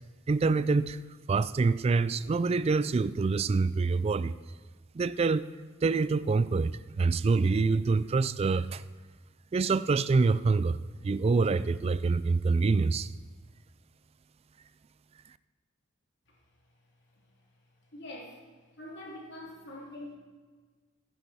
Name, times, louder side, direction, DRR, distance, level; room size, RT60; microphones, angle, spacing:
voice 1, 0.3-1.0 1.3-4.3 4.9-5.5 5.8-8.8 9.5-10.8 11.0-13.1, right 4 dB, 30° right, 16 dB, 0.3 m, -26 dB
voice 2, 17.9-18.4 18.8-20.2, left 1 dB, 55° left, -2 dB, 2.9 m, -43 dB
14.5 x 10.0 x 4.1 m, 1.4 s
head